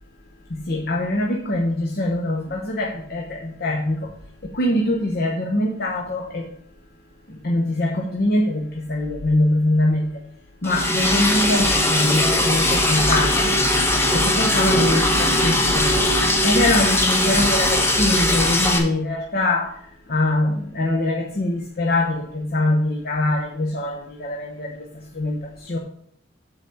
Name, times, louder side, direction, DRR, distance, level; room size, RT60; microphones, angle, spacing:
voice 1, 0.5-4.0 4.5-6.5 7.4-10.0 10.6-13.5 14.1-16.1 16.4-19.7 20.1-24.9 25.1-25.8, left 1 dB, 55° left, 0 dB, 1.0 m, -23 dB
Liquid, 10.6-18.8, left 1 dB, 15° left, 1.1 m, -19 dB
7.8 x 4.1 x 6.9 m, 0.67 s
head